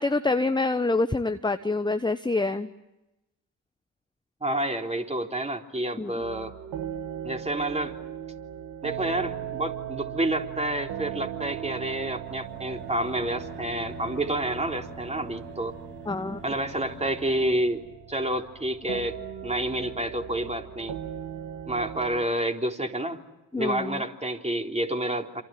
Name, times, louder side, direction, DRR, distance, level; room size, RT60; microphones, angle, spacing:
voice 1, 0.0-2.7 6.0-6.2 16.1-16.4 23.5-24.0, left 3 dB, 10° left, 10 dB, 1.1 m, -26 dB
voice 2, 4.4-6.5 7.2-8.0 8.8-15.7 16.4-17.8 18.1-19.2 19.4-21.0 21.7-23.2 23.5-25.4, right 1 dB, 15° right, 3 dB, 3.7 m, -29 dB
sound 1, 6.2-22.2, right 10 dB, 65° right, 2.4 m, -38 dB
sound 2, 12.3-17.6, right 2 dB, 80° right, 5.7 m, -43 dB
28.5 x 27.0 x 7.7 m, 1.0 s
figure-of-eight pair, 40°, 44 cm